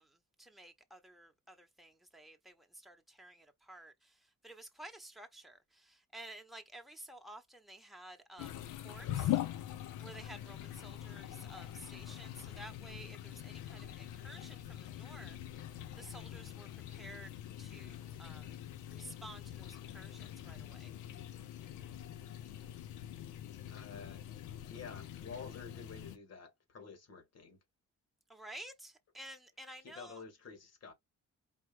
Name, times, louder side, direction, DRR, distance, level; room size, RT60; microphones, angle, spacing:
voice 1, 0.0-9.4 10.0-15.6 16.0-17.3 17.6-18.6 18.9-20.9 28.3-30.2, right 1 dB, ahead, 1.2 m, -53 dB
sound 1, 8.4-26.2, left 12 dB, 90° left, 0.7 m, -43 dB
voice 2, 23.7-24.2 24.7-27.6 29.8-30.9, left 5 dB, 55° left, 2.1 m, -50 dB
5.0 x 2.9 x 3.3 m
cardioid pair, 90°, 30 cm